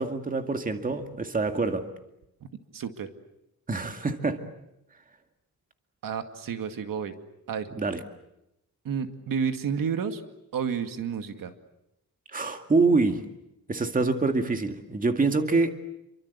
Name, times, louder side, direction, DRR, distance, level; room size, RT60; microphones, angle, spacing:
voice 1, 0.0-1.8 3.7-4.4 7.7-8.0 12.3-13.2 13.7-15.7, right 3 dB, 25° right, 6 dB, 2.2 m, -25 dB
voice 2, 2.7-3.1 6.0-7.1 7.5-7.7 8.8-10.2 10.5-11.5, right 7 dB, 80° right, 7 dB, 2.3 m, -30 dB
29.0 x 24.5 x 8.3 m, 0.84 s
wide cardioid pair, 145°, 33 cm